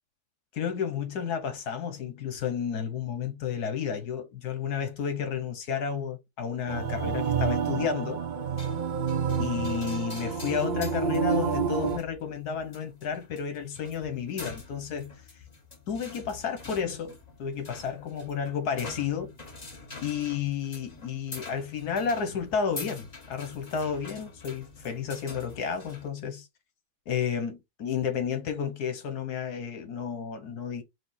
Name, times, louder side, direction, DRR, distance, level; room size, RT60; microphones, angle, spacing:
voice 1, 0.5-8.2 9.4-15.1 15.9-19.3 20.0-26.5 27.1-30.8, left 7 dB, 80° left, 1.6 m, -32 dB
sound 1, 6.7-12.0, right 6 dB, 50° right, 0.6 m, -29 dB
sound 2, 8.6-26.1, left 3 dB, 30° left, 1.0 m, -46 dB
5.1 x 2.2 x 3.9 m
omnidirectional pair, 1.7 m